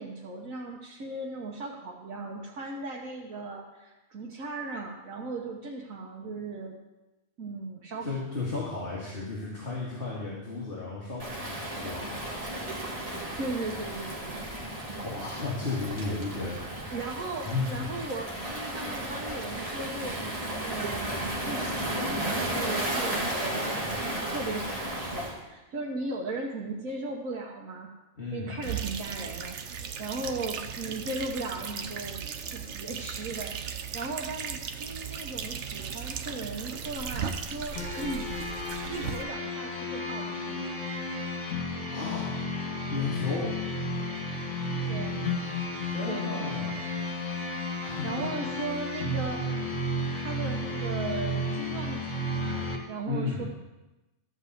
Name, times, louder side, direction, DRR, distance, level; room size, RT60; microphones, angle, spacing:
voice 1, 0.0-6.8 7.4-8.2 13.4-14.4 16.9-27.9 28.3-29.6 30.0-32.2 32.5-38.3 38.9-40.7 44.9-45.4 46.1-46.7 47.8-49.6 50.1-53.4, right 2 dB, 90° right, -2 dB, 1.6 m, -37 dB
voice 2, 8.0-12.3 13.3-13.4 15.0-16.9 17.4-17.7 28.1-28.6 41.9-42.3 42.9-43.5 45.8-46.8 47.8-48.5 53.0-53.4, left 3 dB, 45° left, -6 dB, 2.3 m, -34 dB
Waves surf, 11.2-25.3, right 1 dB, 25° right, 2.0 m, -34 dB
sound 1, 28.6-39.2, right 7 dB, 65° right, 1.1 m, -37 dB
sound 2, 37.8-52.8, left 1 dB, 70° left, 2.3 m, -33 dB
13.5 x 5.4 x 7.9 m, 1.1 s
omnidirectional pair, 1.4 m